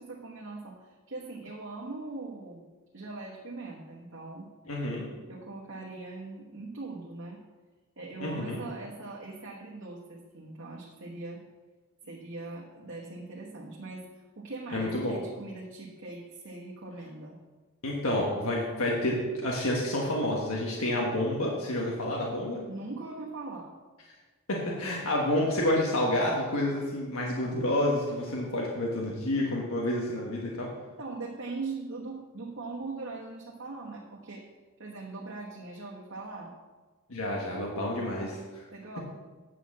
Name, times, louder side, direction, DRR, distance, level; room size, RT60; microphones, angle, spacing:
voice 1, 0.0-2.6 2.9-4.5 5.3-7.4 8.0-11.4 12.0-17.4 22.7-23.7 31.0-34.4 34.8-36.5 38.7-39.0, right 3 dB, 65° right, -4 dB, 1.3 m, -41 dB
voice 2, 4.7-5.1 8.2-8.6 14.7-15.1 17.8-22.6 24.5-30.7 37.1-38.6, left 1 dB, 80° left, -2 dB, 1.4 m, -29 dB
8.8 x 4.7 x 7.2 m, 1.3 s
head